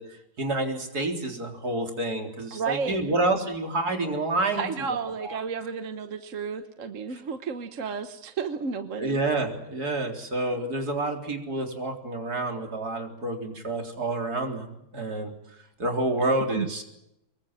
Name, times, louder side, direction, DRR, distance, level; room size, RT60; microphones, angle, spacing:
voice 1, 0.0-4.7 5.2-5.4 7.1-7.2 9.0-15.3 15.8-16.8, right 2 dB, 70° right, 3 dB, 4.4 m, -28 dB
voice 2, 2.5-3.0 4.6-9.2 16.5-16.8, right 6 dB, 55° right, 8 dB, 1.5 m, -32 dB
25.0 x 22.5 x 7.5 m, 0.85 s
omnidirectional pair, 1.7 m